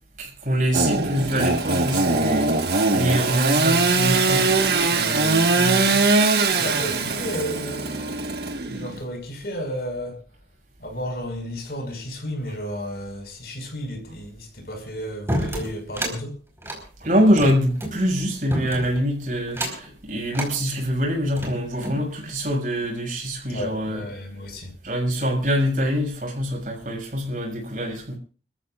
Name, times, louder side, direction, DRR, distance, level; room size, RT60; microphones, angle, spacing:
voice 1, 0.2-2.5 2.9-6.0 17.0-24.0 24.8-28.2, equal, 45° right, 6.8 m, -24 dB
Engine / Sawing, 0.7-9.0, right 3 dB, 65° right, 1.6 m, -21 dB
voice 2, 6.5-10.2 10.8-16.4 23.5-24.8, equal, 60° left, 5.7 m, -33 dB
sound 1, 15.3-16.2 16.6-18.0 18.5-19.0 19.5-19.9 20.3-20.5 21.1-22.0, right 1 dB, 15° right, 4.7 m, -29 dB
29.5 x 14.0 x 2.5 m
head